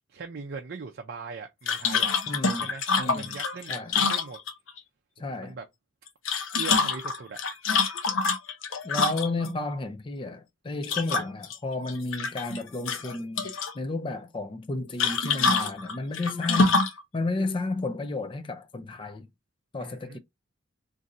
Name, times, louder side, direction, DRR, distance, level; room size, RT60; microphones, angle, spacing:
voice 1, 0.1-2.3 2.6-4.4 5.2-5.6 6.5-7.4 19.8-20.2, right 4 dB, 50° right, 0.5 m, -40 dB
sound 1, 1.7-4.8 6.1-9.5 10.8-11.6 11.9-12.6 12.9-13.7 15.0-17.0, left 4 dB, 75° left, 0.7 m, -26 dB
voice 2, 2.3-2.7 3.0-3.3 3.7-3.9 5.2-5.6 8.8-16.9 17.1-19.3 19.7-20.2, left 2 dB, 25° left, 0.4 m, -32 dB
2.6 x 2.5 x 4.0 m
head